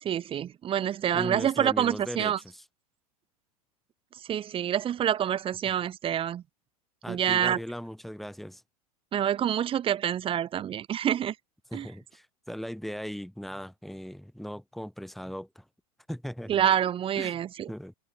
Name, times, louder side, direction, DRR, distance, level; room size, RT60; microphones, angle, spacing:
voice 1, 0.0-2.4 4.3-6.4 7.1-7.6 9.1-11.3 11.7-11.9 16.5-17.7, right 10 dB, 30° right, 1.2 m, -27 dB
voice 2, 1.1-2.6 7.0-8.6 11.7-15.6 16.1-16.7 17.2-17.4 17.7-17.9, equal, ahead, 1.1 m, -38 dB
figure-of-eight pair, 90°, 19 cm